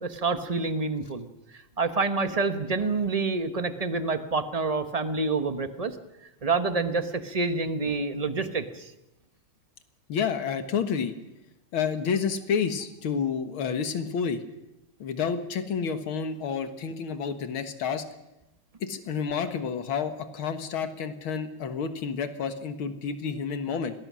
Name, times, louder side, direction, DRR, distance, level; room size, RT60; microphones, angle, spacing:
voice 1, 0.0-1.3 1.8-6.0 6.4-8.9, right 3 dB, 25° right, 9 dB, 0.8 m, -27 dB
voice 2, 10.1-11.1 11.7-14.4 15.0-18.0 18.8-23.9, left 6 dB, 75° left, 9 dB, 2.3 m, -29 dB
26.0 x 19.5 x 6.3 m, 0.94 s
omnidirectional pair, 2.3 m